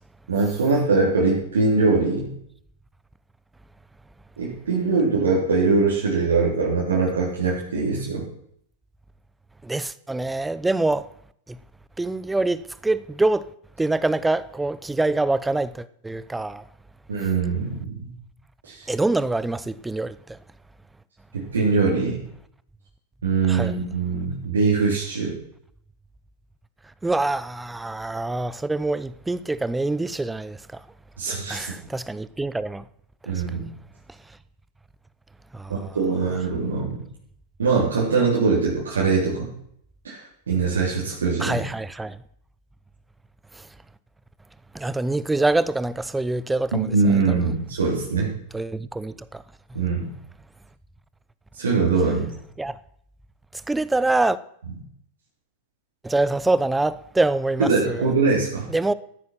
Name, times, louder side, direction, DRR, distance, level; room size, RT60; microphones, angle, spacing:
voice 1, 0.3-2.3 4.4-8.2 17.1-18.1 18.7-18.9 21.3-22.2 23.2-25.3 31.2-31.7 33.2-33.6 35.7-36.9 37.6-39.5 40.0-41.6 46.7-48.3 49.7-50.1 51.5-52.3 57.6-58.7, right 4 dB, 80° right, 3.5 m, -22 dB
voice 2, 9.6-11.1 11.5-11.6 12.0-13.5 13.8-16.6 18.9-20.4 23.5-23.7 27.0-30.8 31.5-32.8 33.5-33.6 35.5-36.0 41.4-42.2 43.6-43.7 44.7-47.5 48.5-49.4 52.6-52.8 53.7-54.4 56.0-58.1 58.7-58.9, right 2 dB, 10° right, 0.7 m, -25 dB
14.0 x 9.6 x 5.8 m
hypercardioid pair, 95°, 0 cm